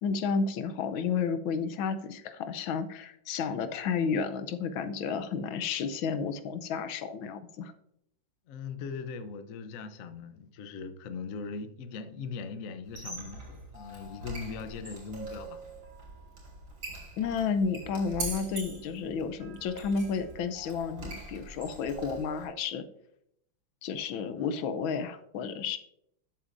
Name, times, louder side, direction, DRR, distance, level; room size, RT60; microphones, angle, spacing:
voice 1, 0.0-7.7 17.2-22.8 23.8-25.8, left 5 dB, 80° left, 1.5 m, -31 dB
voice 2, 8.5-15.6 24.4-24.5, left 5 dB, 60° left, 0.9 m, -40 dB
Squeak, 12.8-22.5, right 3 dB, 90° right, 3.9 m, -43 dB
12.5 x 7.2 x 2.6 m
omnidirectional pair, 2.2 m